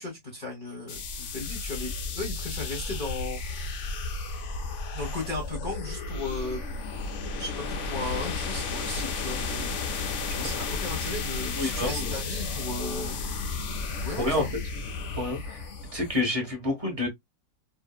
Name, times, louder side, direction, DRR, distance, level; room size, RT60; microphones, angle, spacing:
voice 1, 0.0-3.4 4.9-6.6 7.4-9.7 10.3-13.2 14.0-14.5, left 2 dB, 35° left, 0.8 m, -36 dB
sound 1, 0.9-16.2, left 3 dB, 85° left, 0.6 m, -33 dB
voice 2, 11.5-12.2 14.2-14.4 15.1-15.7 15.9-17.1, left 2 dB, 30° right, 0.7 m, -28 dB
2.7 x 2.4 x 2.2 m
omnidirectional pair, 1.9 m